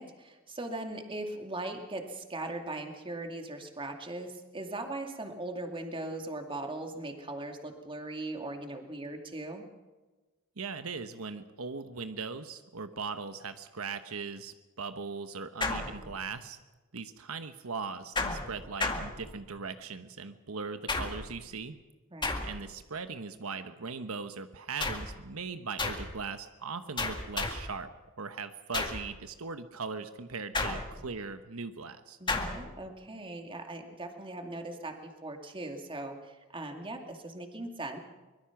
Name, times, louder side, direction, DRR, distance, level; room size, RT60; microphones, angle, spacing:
voice 1, 0.0-9.7 22.1-22.5 32.2-38.0, right 2 dB, 25° right, 4 dB, 2.3 m, -39 dB
voice 2, 10.6-16.6 16.9-21.8 22.4-27.9 28.2-32.2, right 4 dB, 85° right, 9 dB, 1.1 m, -39 dB
sound 1, 15.6-16.5 18.2-19.7 20.9-21.4 22.2-22.8 24.8-25.2 25.8-26.2 27.0-27.8 28.7-29.1 30.5-31.2 32.3-32.7, left 3 dB, 20° left, 2.0 m, -33 dB
24.0 x 21.5 x 6.0 m, 1.2 s
head